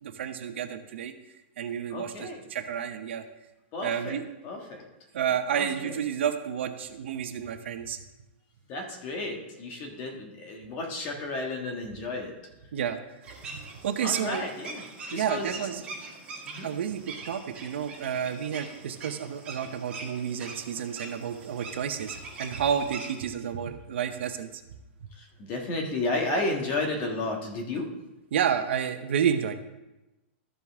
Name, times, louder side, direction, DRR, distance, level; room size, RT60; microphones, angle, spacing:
voice 1, 0.0-1.1 1.6-3.2 3.8-4.2 5.1-8.0 12.7-13.0 13.5-14.4 15.1-15.8 16.6-24.6 28.3-29.5, right 8 dB, 70° right, 7 dB, 0.8 m, -30 dB
voice 2, 1.9-2.4 3.7-4.2 4.4-4.8 5.5-5.9 8.7-12.3 14.0-14.8 15.1-15.5 16.4-16.7 19.6-19.7 20.4-20.5 25.1-27.9, left 2 dB, 30° left, 1 dB, 1.4 m, -32 dB
sound 1, 13.2-23.2, right 3 dB, 15° right, 1.8 m, -43 dB
14.0 x 5.3 x 3.5 m, 0.99 s
supercardioid pair, 170°, 7 cm